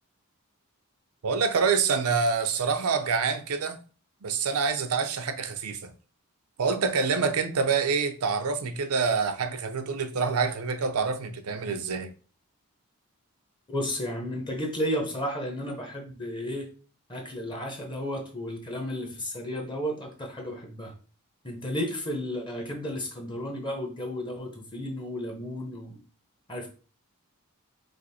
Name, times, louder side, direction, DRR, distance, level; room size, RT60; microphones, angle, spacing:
voice 1, 1.2-3.8 4.2-5.9 6.6-12.1, right 5 dB, 80° right, 0.6 m, -26 dB
voice 2, 13.7-16.7 17.1-20.9 21.4-26.0 26.5-26.7, equal, 20° left, 0.9 m, -33 dB
5.1 x 2.0 x 4.2 m
head